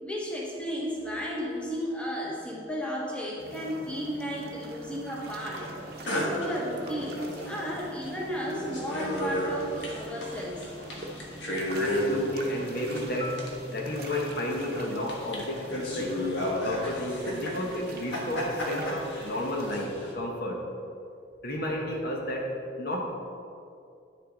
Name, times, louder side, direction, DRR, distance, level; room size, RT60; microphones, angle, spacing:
voice 1, 0.0-5.7 6.1-10.6, equal, 5° left, -4 dB, 1.0 m, -34 dB
sound 1, 3.4-19.9, right 1 dB, 50° right, 0.8 m, -44 dB
sound 2, 5.5-5.8 6.1-7.7 8.0-8.1 8.4-20.1, equal, 70° left, 1.4 m, -34 dB
voice 2, 11.8-13.4 13.7-16.2 16.6-20.6 21.4-22.5 22.8-23.0, left 1 dB, 50° left, 0 dB, 1.1 m, -32 dB
Marimba xylophone, 13.2-17.4, equal, 25° left, 0.4 m, -44 dB
9.6 x 6.6 x 3.9 m, 2.5 s
head